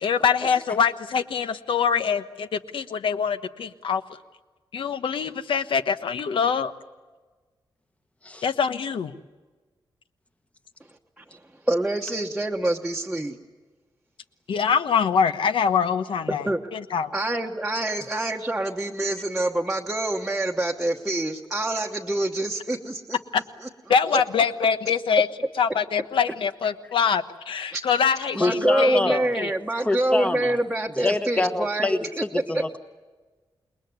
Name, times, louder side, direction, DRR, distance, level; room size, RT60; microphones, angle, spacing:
voice 1, 0.0-4.0 4.7-6.7 8.4-9.1 14.5-17.1 23.9-25.3 25.6-29.5, left 6 dB, 80° left, 10 dB, 1.2 m, -24 dB
voice 2, 11.6-13.4 16.3-16.6 17.1-23.2 24.1-24.2 27.7-27.8 28.3-32.0 32.3-32.8, right 1 dB, 5° right, -2 dB, 1.2 m, -26 dB
voice 3, 28.4-29.3 29.8-30.5 31.0-32.8, left 2 dB, 15° left, 9 dB, 1.2 m, -26 dB
28.0 x 21.5 x 9.6 m, 1.3 s
wide cardioid pair, 175°, 9 cm